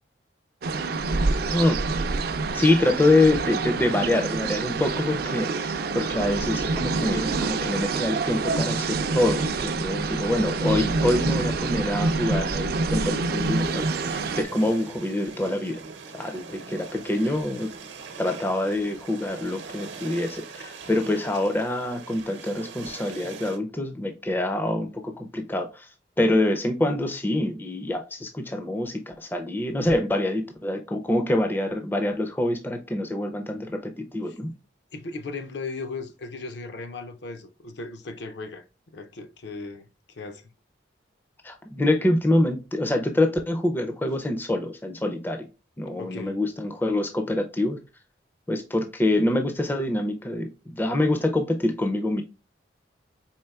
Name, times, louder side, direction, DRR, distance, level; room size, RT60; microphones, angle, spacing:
sound 1, 0.6-14.4, right 3 dB, 55° right, 0.4 m, -26 dB
voice 1, 2.5-15.8 16.1-17.7 18.2-25.9 26.2-34.5 41.4-45.5 45.8-47.8 48.5-52.2, left 1 dB, 10° left, 0.4 m, -25 dB
sound 2, 13.0-23.6, right 4 dB, 75° right, 0.8 m, -42 dB
voice 2, 34.9-38.6 38.9-39.9 40.2-40.5 46.0-46.4, left 3 dB, 65° left, 0.5 m, -37 dB
4.3 x 3.4 x 2.3 m
head